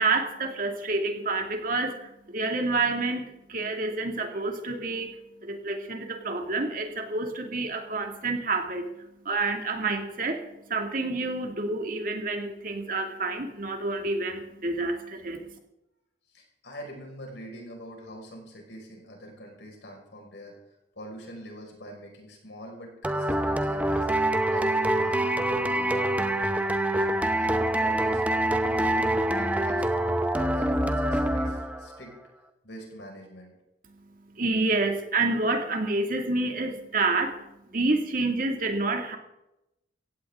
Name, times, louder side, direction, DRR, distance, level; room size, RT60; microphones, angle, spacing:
voice 1, 0.0-10.4 10.7-15.4 34.3-39.2, right 3 dB, 50° right, 4 dB, 2.3 m, -28 dB
voice 2, 16.3-20.5 21.0-24.1 24.5-26.5 26.9-28.2 28.6-32.2 32.6-33.5, equal, 70° left, 1 dB, 5.4 m, -44 dB
sound 1, 23.0-32.0, right 1 dB, 10° right, 0.8 m, -25 dB
16.5 x 16.5 x 3.7 m, 0.88 s
head